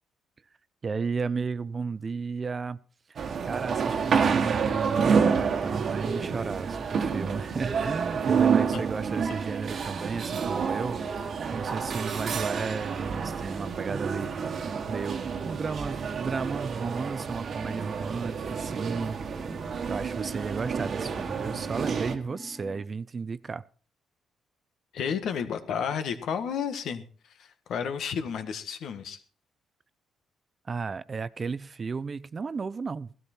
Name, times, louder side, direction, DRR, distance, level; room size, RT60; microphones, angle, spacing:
voice 1, 0.8-2.8 3.5-11.0 11.5-19.2 19.9-23.6 30.6-33.1, right 5 dB, 35° right, 0.6 m, -33 dB
sound 1, 3.2-22.2, right 6 dB, 55° right, 1.5 m, -29 dB
sound 2, 17.6-22.9, right 1 dB, ahead, 1.6 m, -47 dB
voice 2, 24.9-27.0 27.4-29.2, left 7 dB, 70° left, 1.5 m, -31 dB
15.5 x 13.0 x 4.4 m
cardioid pair, 90°, 0 cm